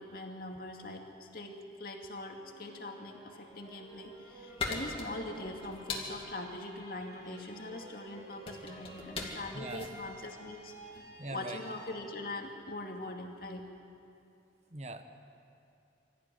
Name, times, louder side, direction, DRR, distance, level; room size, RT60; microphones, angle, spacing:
voice 1, 0.0-11.0 11.3-13.6, left 2 dB, 55° left, 2 dB, 2.4 m, -42 dB
sound 1, 2.3-13.3, right 1 dB, 20° right, 4.5 m, -53 dB
sound 2, 3.7-11.1, left 3 dB, 30° left, 2.5 m, -42 dB
voice 2, 9.5-9.9 11.2-11.7 14.7-15.0, right 2 dB, 35° right, 8 dB, 1.2 m, -41 dB
25.0 x 14.5 x 9.6 m, 2.7 s
head